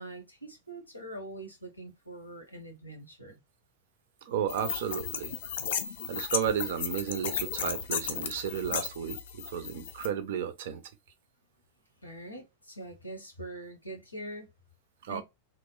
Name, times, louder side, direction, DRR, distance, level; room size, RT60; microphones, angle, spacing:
voice 1, 0.0-3.4 12.0-14.5 15.1-15.2, right 1 dB, 85° left, 0.8 m, -43 dB
voice 2, 4.2-5.4 6.1-10.8 15.0-15.2, right 8 dB, 55° right, 0.5 m, -33 dB
sound 1, 4.5-10.1, left 7 dB, 60° left, 0.4 m, -35 dB
2.8 x 2.0 x 2.3 m
figure-of-eight pair, 90°, 0 cm